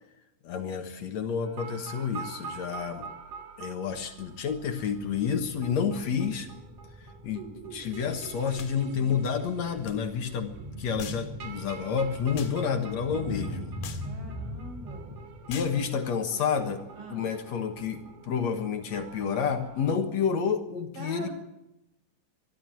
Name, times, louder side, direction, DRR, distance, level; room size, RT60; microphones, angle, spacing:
voice 1, 0.4-3.1 3.6-6.5 7.2-13.8 15.5-16.8 17.1-21.3, left 6 dB, 60° left, 6 dB, 2.5 m, -29 dB
sound 1, 1.4-19.9, right 6 dB, 55° right, 2.6 m, -46 dB
sound 2, 5.0-15.7, equal, 5° right, 5.7 m, -42 dB
sound 3, 8.6-8.8 9.8-10.0 11.0-11.3 12.3-12.6 13.8-14.1 15.5-15.8, left 8 dB, 80° left, 3.4 m, -41 dB
voice 2, 14.0-15.1 16.9-17.3 20.9-21.3, right 3 dB, 80° right, 5 dB, 6.7 m, -43 dB
22.5 x 13.0 x 9.1 m, 0.90 s
omnidirectional pair, 3.9 m